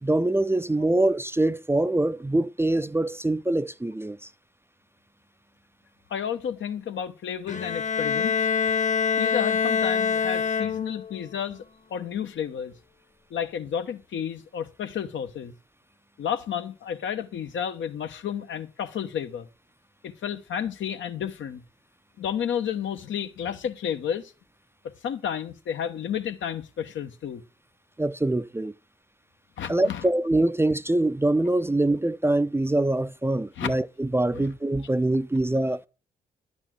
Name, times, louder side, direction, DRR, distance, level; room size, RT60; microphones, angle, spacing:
voice 1, 0.0-4.3 28.0-28.7 29.7-35.9, right 2 dB, 10° right, 0.6 m, -24 dB
voice 2, 6.1-8.5 9.2-11.6 11.9-12.7 13.3-15.5 16.2-19.5 20.0-21.6 22.2-24.3 25.0-27.4 29.6-30.0 33.6-33.7 34.3-34.5, left 8 dB, 70° left, 1.2 m, -31 dB
Bowed string instrument, 7.5-11.1, left 6 dB, 35° left, 1.2 m, -25 dB
11.0 x 4.4 x 7.5 m
hypercardioid pair, 40°, 20 cm